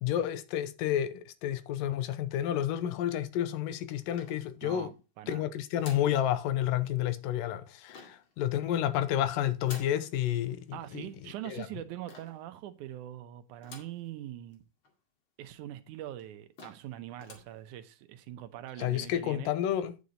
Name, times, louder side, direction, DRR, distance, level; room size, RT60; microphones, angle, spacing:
voice 1, 0.0-4.9 5.3-11.1 11.4-11.7 18.8-20.0, left 11 dB, 85° left, 2.5 m, -30 dB
sound 1, 4.1-4.9 5.8-6.2 7.9-8.3 9.6-10.0 12.1-12.5 13.6-14.0 14.5-14.6 14.8-14.9 15.7-15.8 16.2-16.3 16.6-16.9 17.2-17.5, left 3 dB, 40° left, 2.7 m, -49 dB
voice 2, 4.6-5.5 10.7-14.6 15.4-19.5, right 12 dB, 75° right, 2.1 m, -43 dB
9.6 x 6.5 x 4.1 m
omnidirectional pair, 3.9 m